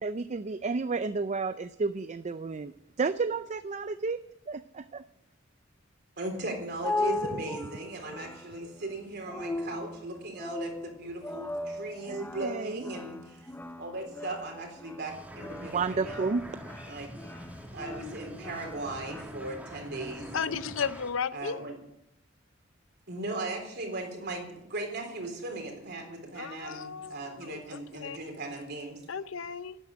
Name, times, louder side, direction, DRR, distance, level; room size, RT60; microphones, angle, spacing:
voice 1, 0.0-4.2 4.5-5.0 7.3-7.4 12.1-12.8 15.6-16.4, right 4 dB, 35° right, 12 dB, 0.4 m, -32 dB
voice 2, 6.2-13.5 13.8-16.3 16.9-17.1 17.7-20.3 21.3-21.8 23.1-29.0, right 2 dB, 55° right, 3 dB, 3.8 m, -38 dB
sound 1, 6.4-19.2, left 2 dB, 10° left, 0.7 m, -38 dB
sound 2, 15.1-21.1, equal, 10° right, 2.4 m, -45 dB
voice 3, 20.3-21.6 26.3-28.2 29.1-29.8, left 6 dB, 75° left, 14 dB, 0.7 m, -34 dB
12.0 x 9.5 x 8.7 m, 0.79 s
head